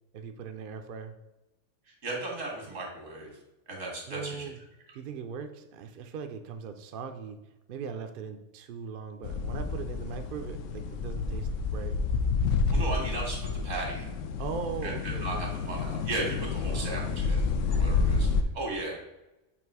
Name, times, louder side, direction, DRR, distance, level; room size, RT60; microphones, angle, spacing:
voice 1, 0.1-1.2 4.1-4.6 4.9-7.4 7.7-12.0 14.4-15.4 16.7-17.2, right 6 dB, 55° right, 7 dB, 0.6 m, -39 dB
voice 2, 2.0-3.3 3.7-4.5 12.7-14.1 14.8-19.0, right 2 dB, 90° right, -1 dB, 2.0 m, -36 dB
sound 1, 9.2-18.4, left 4 dB, 85° left, 0.9 m, -29 dB
7.1 x 2.9 x 4.7 m, 0.98 s
omnidirectional pair, 1.3 m